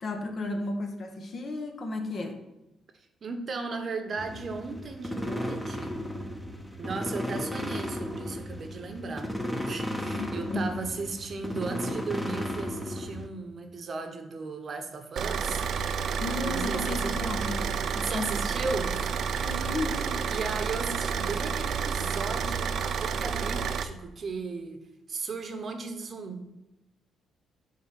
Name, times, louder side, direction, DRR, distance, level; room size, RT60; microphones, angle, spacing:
voice 1, 0.0-2.4 10.1-10.7 16.2-18.4 19.5-20.3, left 2 dB, 50° left, 4 dB, 1.1 m, -34 dB
voice 2, 3.2-6.1 6.8-9.3 9.6-15.6 16.1-17.2 18.0-19.8 20.3-24.8 25.1-26.4, right 4 dB, 45° right, 7 dB, 0.9 m, -36 dB
sound 1, 4.2-13.3, equal, 5° left, 0.9 m, -34 dB
Car / Idling, 15.2-23.8, right 6 dB, 65° right, 0.5 m, -30 dB
7.9 x 3.5 x 5.9 m, 0.94 s
cardioid pair, 90°, 0 cm